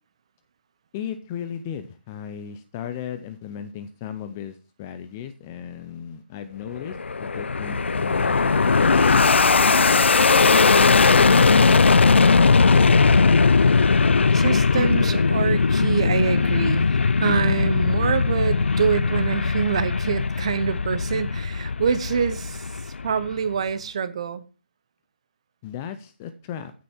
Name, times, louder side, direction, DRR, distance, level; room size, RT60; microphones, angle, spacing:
voice 1, 0.9-10.6 11.1-12.3 25.6-26.7, left 9 dB, 15° left, 0.5 m, -36 dB
Fixed-wing aircraft airplane, 6.8-23.4, left 4 dB, 75° left, 0.6 m, -19 dB
voice 2, 14.3-24.5, right 6 dB, 30° right, 0.8 m, -26 dB
15.0 x 6.6 x 4.4 m
hypercardioid pair, 175°, 6 cm